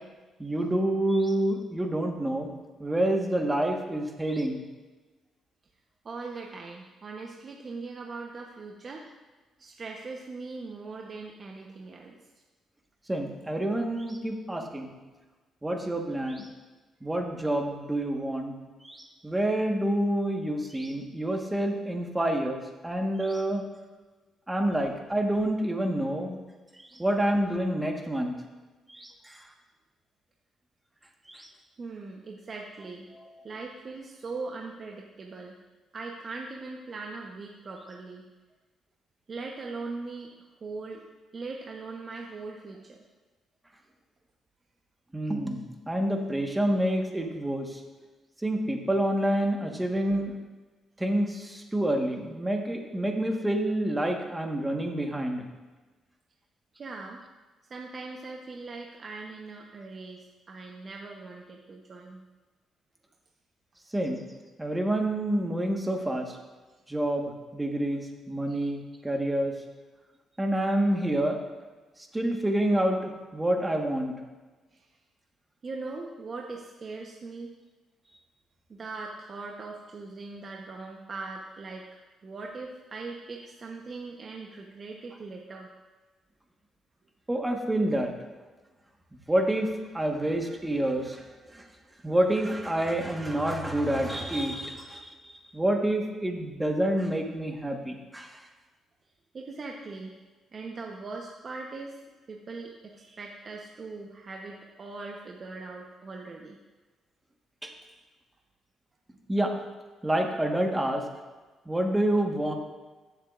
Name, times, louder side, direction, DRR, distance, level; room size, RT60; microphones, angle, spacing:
voice 1, 0.4-2.5 2.8-4.6 13.1-14.9 15.6-16.5 17.0-18.5 18.8-23.6 24.5-26.4 26.8-28.4 28.9-29.4 31.3-31.5 45.1-47.8 48.4-50.3 51.0-55.5 63.9-64.2 64.6-66.4 66.9-69.5 70.4-71.4 72.1-74.1 87.3-88.1 89.3-89.7 89.9-91.3 91.5-91.7 92.0-98.4 107.6-107.7 109.3-109.6 110.0-111.0 111.7-112.5, right 1 dB, 10° right, 3 dB, 1.4 m, -28 dB
voice 2, 6.0-9.0 9.6-12.2 31.8-33.1 33.4-35.6 35.9-38.3 39.3-40.3 40.6-41.0 41.3-43.0 56.8-57.2 57.7-62.2 68.5-68.7 74.7-74.8 75.6-77.5 78.7-85.7 99.3-100.1 100.5-102.0 102.3-106.6, right 3 dB, 40° right, 0 dB, 0.9 m, -40 dB
15.5 x 7.3 x 2.5 m, 1.3 s
cardioid pair, 90°, 0 cm